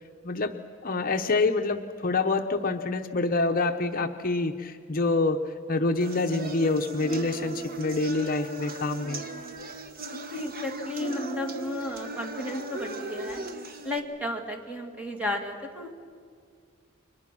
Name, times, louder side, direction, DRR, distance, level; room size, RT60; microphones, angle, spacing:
voice 1, 0.2-0.6 0.8-9.2, left 3 dB, 45° left, 5 dB, 0.8 m, -26 dB
sound 1, 6.0-14.0, right 2 dB, 45° right, 1.4 m, -38 dB
voice 2, 10.3-13.4 13.8-15.9, left 1 dB, 5° right, 2 dB, 2.2 m, -33 dB
30.0 x 23.5 x 6.1 m, 2.1 s
head